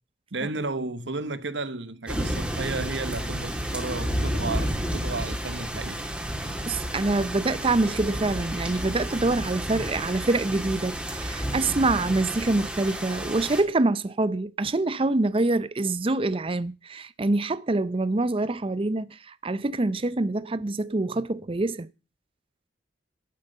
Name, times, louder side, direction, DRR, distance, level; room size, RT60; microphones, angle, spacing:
voice 1, 0.3-6.0, right 3 dB, 90° right, 1.2 m, -33 dB
sound 1, 2.1-13.6, equal, 5° right, 3.1 m, -31 dB
voice 2, 6.6-21.9, right 2 dB, 30° right, 0.6 m, -25 dB
11.5 x 9.2 x 6.7 m
head